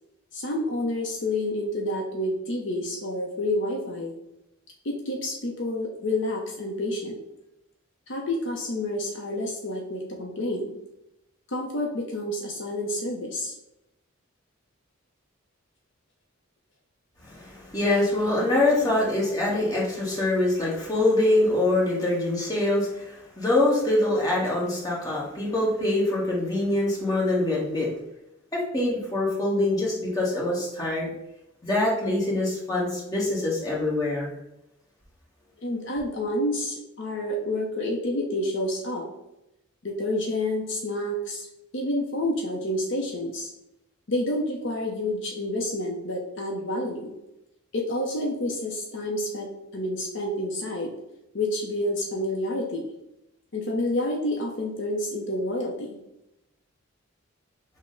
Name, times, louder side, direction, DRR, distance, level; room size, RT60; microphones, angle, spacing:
voice 1, 0.3-4.1 4.8-7.2 8.1-10.7 11.5-13.5 19.0-19.1 35.6-39.1 39.8-41.5 41.7-43.5 44.1-47.1 47.7-50.9 51.3-52.8 53.5-56.0, left 1 dB, 60° left, 0 dB, 0.6 m, -29 dB
voice 2, 17.2-27.9 28.5-31.1 31.6-34.3, left 2 dB, 15° left, -5 dB, 1.1 m, -24 dB
5.9 x 2.1 x 3.7 m, 0.88 s
head